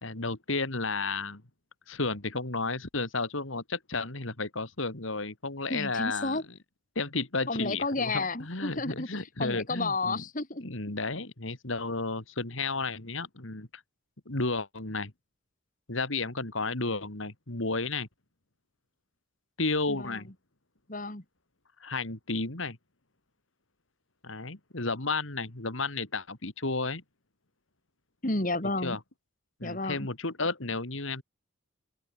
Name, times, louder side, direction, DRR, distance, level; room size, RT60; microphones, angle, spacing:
voice 1, 0.0-1.4 1.9-6.4 6.9-10.2 10.6-13.8 14.3-15.1 15.9-18.1 19.6-20.3 21.8-22.8 24.2-27.0 28.8-29.0 29.6-31.2, left 3 dB, 70° left, 2.7 m, -32 dB
voice 2, 5.7-6.4 7.5-9.1 9.4-10.7 19.9-20.2 20.9-21.2 28.2-29.0 29.6-30.1, left 2 dB, 40° left, 2.7 m, -31 dB
open air
head